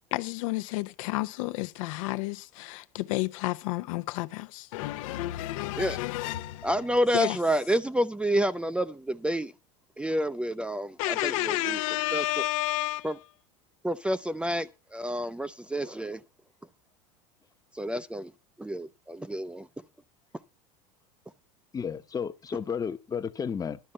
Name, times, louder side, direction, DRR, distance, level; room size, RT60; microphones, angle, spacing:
voice 1, 0.1-6.7 7.1-7.4 11.0-13.1, left 18 dB, 70° left, 0.8 m, -31 dB
voice 2, 6.6-9.5 10.0-11.8 12.1-12.2 13.0-13.2 13.8-16.2 17.7-18.3 18.6-19.7, equal, 5° right, 0.5 m, -29 dB
voice 3, 21.7-23.8, left 6 dB, 20° left, 0.9 m, -32 dB
11.5 x 5.3 x 8.7 m
supercardioid pair, 110°, 17 cm